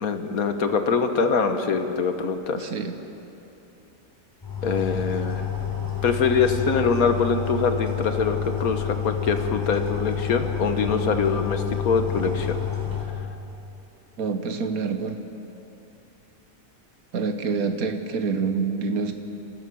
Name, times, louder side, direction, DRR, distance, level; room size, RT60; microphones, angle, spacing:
voice 1, 0.0-2.7 4.6-5.5 6.0-12.6, left 5 dB, 85° left, 7 dB, 1.7 m, -24 dB
voice 2, 2.5-3.0 14.2-15.2 17.1-19.1, right 5 dB, 90° right, 6 dB, 1.5 m, -27 dB
sound 1, 4.4-13.0, left 9 dB, 15° left, 3.4 m, -29 dB
27.0 x 15.5 x 6.3 m, 2.9 s
omnidirectional pair, 1.5 m